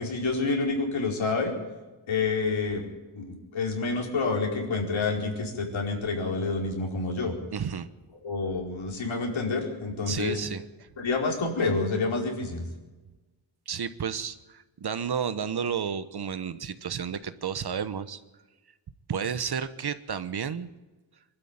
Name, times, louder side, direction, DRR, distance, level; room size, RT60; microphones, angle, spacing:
voice 1, 0.0-1.5 2.1-2.9 3.1-7.4 8.2-10.4 11.0-12.7, left 3 dB, 75° left, 1 dB, 4.8 m, -28 dB
voice 2, 7.5-7.9 10.1-10.6 13.7-18.2 19.1-20.7, right 7 dB, 55° right, 12 dB, 1.2 m, -31 dB
23.5 x 12.5 x 8.9 m, 1.2 s
wide cardioid pair, 95°, 47 cm